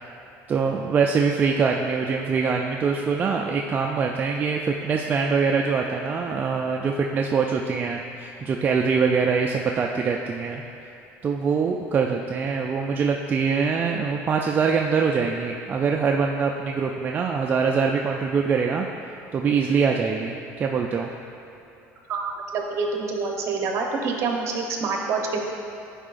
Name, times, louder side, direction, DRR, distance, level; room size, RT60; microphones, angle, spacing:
voice 1, 0.5-10.6 11.2-21.1, right 5 dB, 30° right, 1 dB, 0.3 m, -24 dB
voice 2, 22.1-25.4, right 4 dB, 50° right, 1 dB, 0.9 m, -27 dB
9.9 x 4.8 x 2.5 m, 2.9 s
cardioid pair, 125°, 6 cm